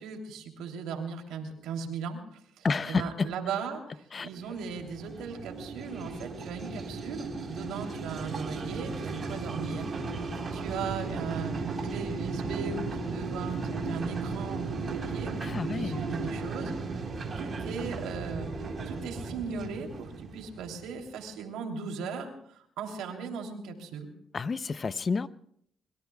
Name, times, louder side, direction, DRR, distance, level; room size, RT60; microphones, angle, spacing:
voice 1, 0.0-9.9 10.5-16.8 17.4-24.1, right 5 dB, 90° right, 3 dB, 3.2 m, -38 dB
voice 2, 2.6-3.0 4.1-4.3 15.4-16.0 24.3-25.3, left 4 dB, 35° left, 15 dB, 0.6 m, -29 dB
sound 1, 4.4-21.1, right 4 dB, 45° right, 4.0 m, -36 dB
25.5 x 22.5 x 2.3 m, 0.66 s
cardioid pair, 90°, 0 cm